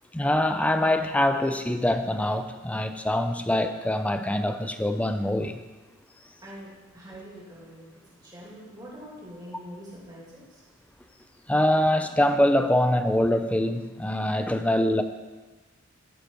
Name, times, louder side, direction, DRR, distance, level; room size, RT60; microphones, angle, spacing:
voice 1, 0.1-5.6 11.5-15.0, left 1 dB, 5° left, 8 dB, 0.4 m, -24 dB
voice 2, 6.4-7.9 8.2-10.6, equal, 20° right, -6 dB, 2.6 m, -44 dB
13.5 x 5.3 x 4.6 m, 1.2 s
head